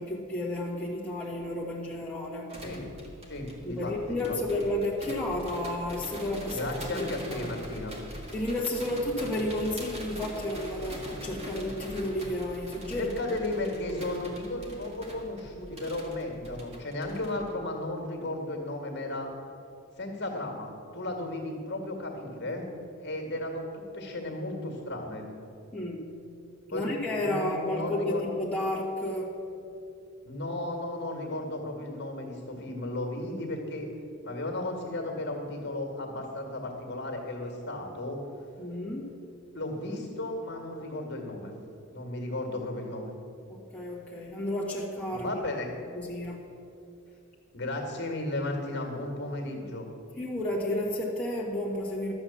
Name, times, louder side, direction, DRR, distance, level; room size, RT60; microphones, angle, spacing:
voice 1, 0.0-2.6 3.6-6.7 6.9-7.7 8.3-13.1 22.4-22.6 25.7-26.1 26.7-29.4 38.6-39.1 43.5-45.4 45.9-46.4 50.2-52.1, left 1 dB, 5° left, -5 dB, 1.6 m, -32 dB
sound 1, 2.5-17.5, equal, 30° right, 1.9 m, -42 dB
voice 2, 3.3-4.4 6.5-7.9 12.9-19.3 20.0-22.7 23.0-25.3 26.7-26.9 27.1-28.2 30.2-33.9 34.2-38.2 39.5-41.5 41.9-43.1 45.1-45.7 47.5-49.9, left 1 dB, 50° left, 2 dB, 1.9 m, -34 dB
12.0 x 7.8 x 7.2 m, 2.7 s
head